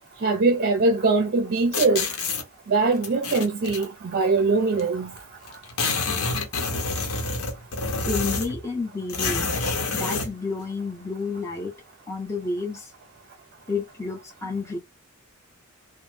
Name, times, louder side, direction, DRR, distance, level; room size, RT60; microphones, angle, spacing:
voice 1, 0.2-2.1 2.7-5.1, right 3 dB, 45° right, 0.5 m, -22 dB
sound 1, 1.7-2.4 3.0-3.8 4.8-4.9 5.1-5.2 5.5-8.6 9.1-10.3, left 3 dB, 90° left, 0.9 m, -27 dB
voice 2, 8.0-9.6 9.9-11.7 12.1-12.9 13.7-14.8, left 3 dB, 15° left, 0.6 m, -30 dB
3.0 x 2.1 x 3.2 m
head